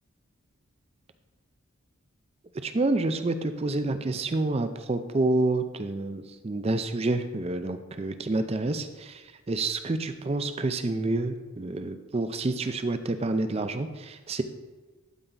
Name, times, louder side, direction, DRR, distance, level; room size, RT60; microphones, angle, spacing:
voice 1, 2.6-14.4, right 2 dB, 30° right, 9 dB, 0.4 m, -28 dB
12.0 x 4.5 x 3.9 m, 1.3 s
head